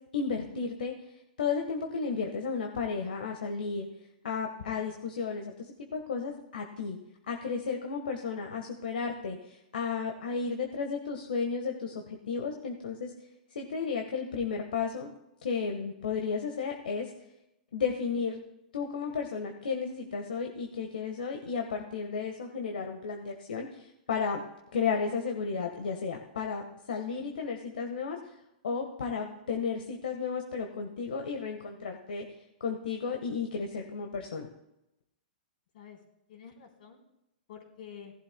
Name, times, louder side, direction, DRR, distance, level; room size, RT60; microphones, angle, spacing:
voice 1, 0.1-0.9 1.4-3.9 4.2-5.5 5.9-7.0 7.3-13.1 13.5-15.1 15.4-17.1 17.7-18.4 18.7-24.4 24.7-28.2 28.6-32.2 32.6-34.5, left 5 dB, 80° left, 3 dB, 1.4 m, -33 dB
voice 2, 4.5-4.9 35.7-36.0 36.3-37.0 37.5-38.1, left 8 dB, 65° left, 1 dB, 3.6 m, -49 dB
18.0 x 11.5 x 2.2 m, 0.86 s
hypercardioid pair, 125°, 5 cm